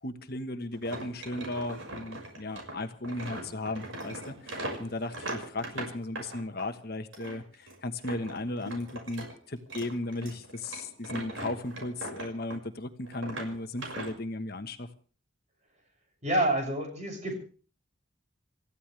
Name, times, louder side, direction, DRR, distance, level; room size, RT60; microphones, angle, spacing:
voice 1, 0.0-14.9, left 2 dB, 50° left, 7 dB, 1.4 m, -36 dB
sound 1, 0.7-6.7 7.1-9.3 9.6-12.7 13.0-14.1, right 1 dB, 75° right, 5.9 m, -40 dB
voice 2, 16.2-17.3, right 1 dB, 35° right, 2 dB, 7.1 m, -28 dB
28.5 x 15.0 x 3.4 m, 0.40 s
head